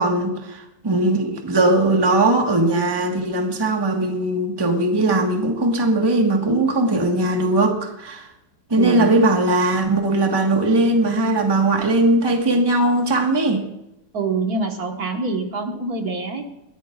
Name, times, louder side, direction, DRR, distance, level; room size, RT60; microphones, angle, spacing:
voice 1, 0.0-8.3 8.7-13.6, right 2 dB, 15° right, 2 dB, 1.3 m, -19 dB
voice 2, 8.8-9.2 14.1-16.4, right 4 dB, 60° right, 2 dB, 1.9 m, -25 dB
21.0 x 14.5 x 2.4 m, 0.87 s
omnidirectional pair, 1.9 m